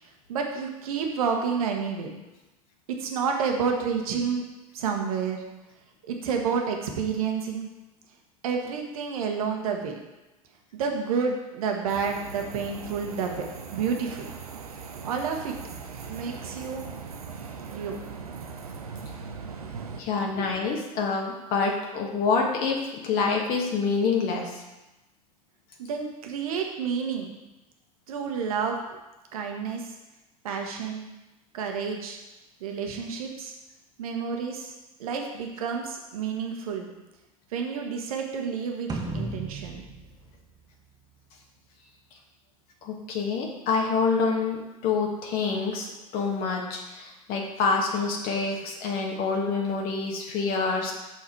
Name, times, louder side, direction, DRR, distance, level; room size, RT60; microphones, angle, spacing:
voice 1, 0.3-2.1 3.0-4.4 4.7-5.4 6.1-7.7 8.4-9.9 10.7-13.4 13.7-14.3 15.0-15.5 16.1-16.9 17.7-18.0 19.6-19.7 20.3-20.5 25.9-27.4 28.1-29.0 29.3-29.9 30.4-31.1 31.5-32.2 32.6-33.5 34.0-34.7 35.0-36.9 37.5-39.8, right 6 dB, 70° right, 2 dB, 1.3 m, -29 dB
sound 1, 11.9-20.0, right 5 dB, 90° right, 0.7 m, -40 dB
voice 2, 20.0-24.6 42.8-50.9, left 4 dB, 50° left, 0 dB, 1.5 m, -27 dB
sound 2, 38.9-41.4, right 2 dB, 20° right, 1.3 m, -36 dB
6.2 x 6.0 x 4.7 m, 1.0 s
hypercardioid pair, 80°, 19 cm